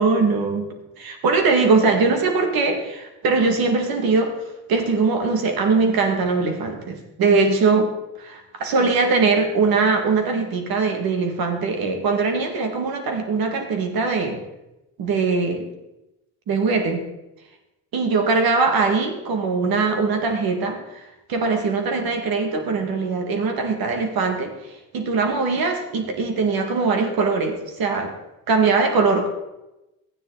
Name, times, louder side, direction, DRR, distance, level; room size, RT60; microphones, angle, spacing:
voice 1, 0.0-4.3 4.7-7.9 8.2-14.4 15.0-15.7 16.5-17.0 17.9-24.5 24.9-28.1 28.5-29.3, right 4 dB, 70° right, 5 dB, 2.3 m, -21 dB
13.5 x 9.5 x 4.1 m, 0.94 s
supercardioid pair, 70°, 38 cm